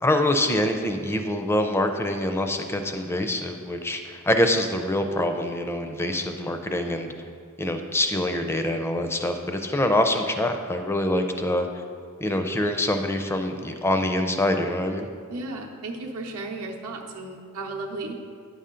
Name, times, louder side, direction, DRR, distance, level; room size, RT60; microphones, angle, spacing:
voice 1, 0.0-7.3 7.6-11.7 12.2-15.1, left 1 dB, 10° left, 6 dB, 0.4 m, -25 dB
voice 2, 15.3-18.2, right 2 dB, 80° right, -1 dB, 0.8 m, -34 dB
9.4 x 5.5 x 3.7 m, 2.3 s
head